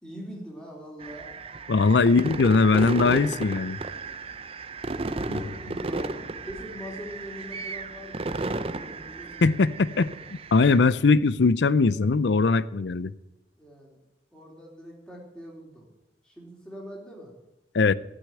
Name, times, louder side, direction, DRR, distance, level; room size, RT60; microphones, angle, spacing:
voice 1, 0.0-1.3 2.0-2.1 4.9-9.6 13.6-14.0 14.3-15.9 16.2-17.3, equal, 5° left, 3.6 m, -43 dB
sound 1, 1.0-10.8, right 3 dB, 35° right, 0.6 m, -34 dB
voice 2, 1.7-3.8 5.3-5.4 9.4-13.1 17.7-17.9, left 4 dB, 80° left, 0.5 m, -21 dB
13.5 x 6.2 x 9.8 m
head